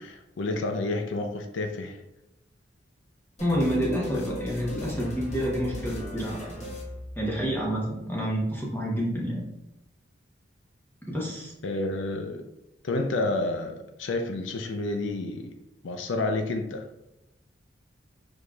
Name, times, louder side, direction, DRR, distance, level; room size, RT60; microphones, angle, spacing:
voice 1, 0.0-2.0 4.1-4.2 11.6-12.4 12.8-15.5 15.8-16.9, left 2 dB, 80° left, 5 dB, 0.5 m, -30 dB
sound 1, 3.4-7.7, left 1 dB, 40° left, 1.3 m, -37 dB
voice 2, 3.4-6.5 7.2-9.4 11.0-11.5, equal, 10° left, -4 dB, 0.9 m, -28 dB
4.9 x 4.1 x 2.3 m, 0.92 s
head